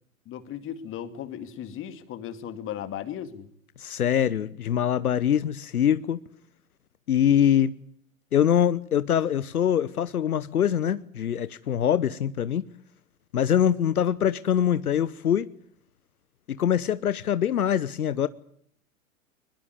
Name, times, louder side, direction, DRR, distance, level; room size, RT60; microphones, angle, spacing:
voice 1, 0.3-3.5, left 10 dB, 30° left, 2.3 m, -36 dB
voice 2, 3.8-6.2 7.1-7.7 8.3-12.6 13.3-15.5 16.5-18.3, left 9 dB, 75° left, 1.0 m, -23 dB
23.0 x 21.0 x 9.6 m
figure-of-eight pair, 105°, 45 cm